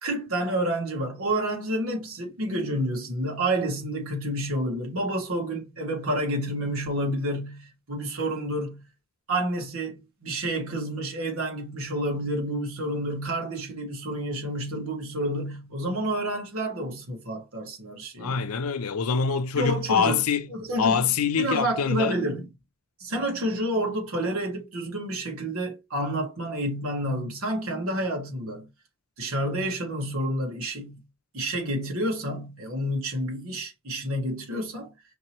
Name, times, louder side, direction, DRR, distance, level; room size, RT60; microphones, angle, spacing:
voice 1, 0.0-8.8 9.3-18.4 19.5-20.2 20.5-21.0 21.4-22.5 23.0-28.7 29.2-31.0 31.3-34.9, right 1 dB, 65° right, 1.7 m, -29 dB
voice 2, 18.2-20.5 20.8-22.2, left 6 dB, 80° left, 0.5 m, -25 dB
5.2 x 2.9 x 2.9 m
head